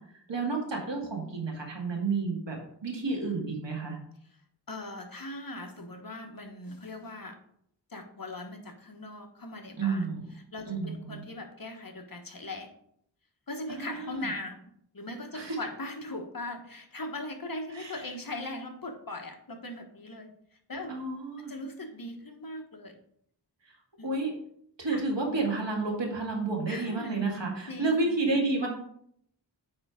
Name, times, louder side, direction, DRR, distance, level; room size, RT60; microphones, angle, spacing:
voice 1, 0.3-4.0 9.8-10.2 10.7-11.2 13.7-14.3 15.3-15.6 17.7-18.0 20.9-21.6 24.0-24.3 24.8-28.7, right 3 dB, 75° right, 0 dB, 2.1 m, -30 dB
voice 2, 4.7-7.4 7.9-10.1 10.5-12.7 13.5-20.3 20.7-20.9 21.4-23.0 24.0-24.1 24.9-25.0 26.7-27.2 27.7-28.2, left 2 dB, 50° left, 4 dB, 1.2 m, -40 dB
8.7 x 3.4 x 5.0 m, 0.69 s
wide cardioid pair, 50°, 43 cm